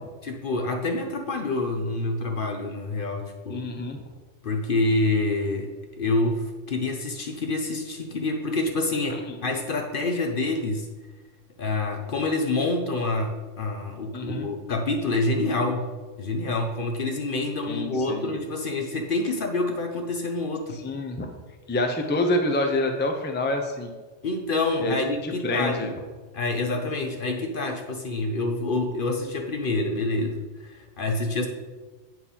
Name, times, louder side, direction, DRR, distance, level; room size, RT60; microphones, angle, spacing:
voice 1, 0.2-3.7 4.4-5.7 6.0-10.9 11.6-20.8 24.2-25.9 26.3-31.5, left 2 dB, 50° left, 4 dB, 0.8 m, -27 dB
voice 2, 3.5-4.0 9.1-9.2 14.1-14.5 17.7-18.3 20.8-21.3 21.7-23.9 24.8-24.9 25.2-25.9, left 2 dB, 10° left, 4 dB, 0.6 m, -27 dB
8.5 x 4.6 x 5.5 m, 1.3 s
omnidirectional pair, 1.3 m